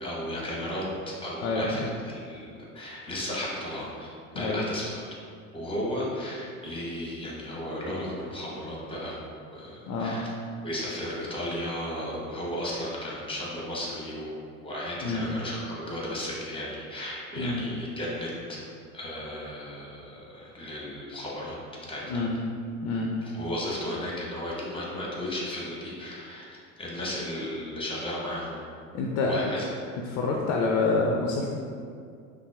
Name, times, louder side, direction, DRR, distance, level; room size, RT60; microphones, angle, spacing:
voice 1, 0.0-5.0 5.5-10.3 10.6-14.3 14.6-15.6 15.9-18.6 18.9-21.6 21.9-22.2 23.3-28.6 29.3-29.7, left 1 dB, 15° left, -5 dB, 1.0 m, -34 dB
voice 2, 1.4-1.9 4.3-4.6 9.9-10.2 15.0-15.3 17.4-17.6 22.1-22.4 22.8-23.1 28.9-29.5 30.0-31.5, left 3 dB, 45° left, 0 dB, 0.4 m, -27 dB
5.5 x 2.1 x 2.3 m, 2.3 s
hypercardioid pair, 75°, 41 cm